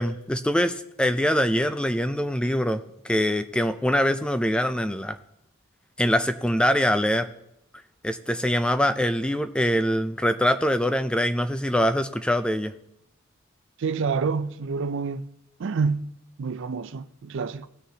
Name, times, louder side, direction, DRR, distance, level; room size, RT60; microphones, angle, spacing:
voice 1, 0.0-5.2 6.0-7.3 8.0-12.7, equal, 5° left, 0.3 m, -24 dB
voice 2, 13.8-15.2 15.6-17.7, right 5 dB, 60° right, 0.4 m, -28 dB
17.0 x 6.5 x 2.8 m
head